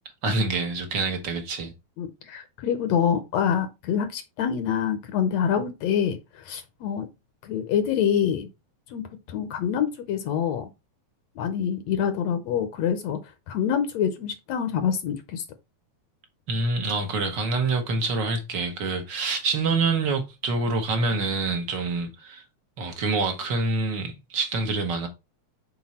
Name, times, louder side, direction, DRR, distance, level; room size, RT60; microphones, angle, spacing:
voice 1, 0.2-1.7 16.5-22.4 22.8-25.1, right 3 dB, 55° right, 1.2 m, -26 dB
voice 2, 2.0-7.1 7.4-8.5 8.9-10.7 11.4-13.2 13.5-15.4, left 8 dB, 70° left, 1.8 m, -26 dB
6.0 x 4.6 x 4.2 m
omnidirectional pair, 3.4 m